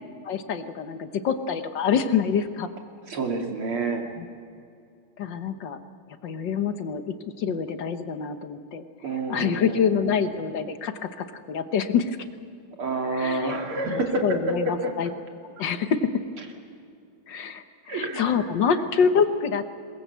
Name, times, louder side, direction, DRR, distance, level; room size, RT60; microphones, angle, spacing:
voice 1, 0.2-2.7 5.2-5.8 6.2-8.8 9.3-12.2 13.1-13.5 13.8-15.1 15.4-16.1 17.3-19.6, left 6 dB, 60° left, 9 dB, 1.7 m, -26 dB
voice 2, 3.1-4.0 9.0-10.1 12.8-14.9 17.9-18.3, right 2 dB, 85° right, 2 dB, 3.4 m, -28 dB
21.5 x 21.5 x 8.1 m, 2.5 s
omnidirectional pair, 2.3 m